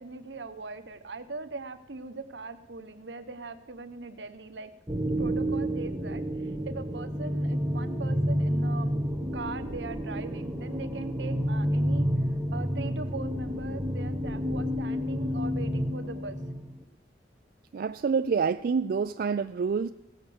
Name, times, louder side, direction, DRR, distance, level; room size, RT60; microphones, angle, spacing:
voice 1, 0.0-4.7 5.2-9.0 9.3-12.1 12.5-16.4, right 3 dB, 85° right, 9 dB, 0.9 m, -40 dB
sound 1, 4.9-16.8, equal, 10° right, 0.9 m, -30 dB
voice 2, 17.7-19.9, right 5 dB, 55° right, 9 dB, 0.4 m, -27 dB
16.5 x 6.6 x 6.9 m, 0.86 s
head